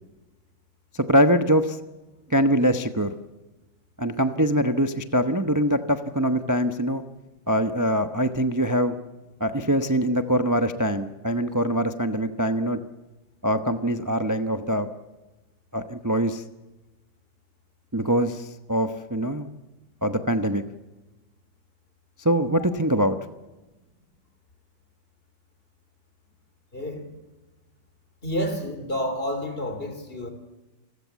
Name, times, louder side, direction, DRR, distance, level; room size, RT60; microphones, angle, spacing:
voice 1, 0.9-1.8 2.3-3.1 4.0-7.0 7.5-9.0 9.4-12.8 13.4-14.9 15.7-16.4 17.9-19.5 20.0-20.6 22.2-23.2, equal, 20° right, 0.5 m, -23 dB
voice 2, 26.7-27.0 28.2-30.3, equal, 30° left, 3.5 m, -29 dB
29.0 x 15.0 x 8.2 m
omnidirectional pair, 2.1 m